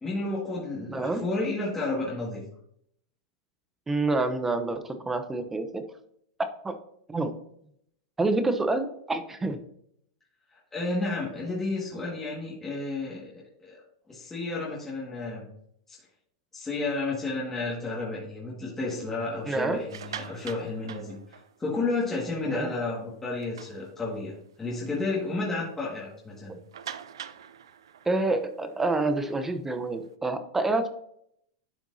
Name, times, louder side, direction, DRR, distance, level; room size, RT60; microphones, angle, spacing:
voice 1, 0.0-2.4 10.5-13.8 14.1-15.5 15.9-16.0 16.5-26.6, left 3 dB, 15° left, -5 dB, 1.9 m, -32 dB
voice 2, 0.9-1.3 3.9-5.9 6.4-6.7 7.1-7.3 8.2-9.6 19.5-19.8 22.5-22.7 28.0-30.9, right 2 dB, 10° right, 9 dB, 0.8 m, -27 dB
sound 1, 19.7-21.9 22.3-22.5 22.9-23.0 23.4-24.4 24.9-25.0 25.3-25.4 26.7-30.1, right 9 dB, 90° right, 0.4 m, -44 dB
11.5 x 4.4 x 2.7 m, 0.72 s
hypercardioid pair, 125°, 2 cm